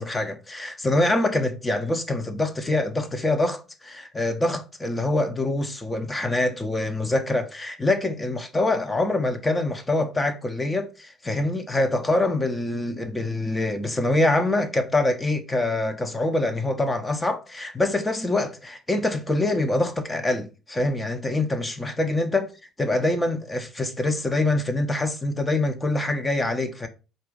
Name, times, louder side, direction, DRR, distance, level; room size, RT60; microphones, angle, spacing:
voice 1, 0.0-22.5 22.8-26.9, left 2 dB, 20° left, 0.6 m, -25 dB
3.9 x 2.4 x 3.7 m
hypercardioid pair, 60°, 0 cm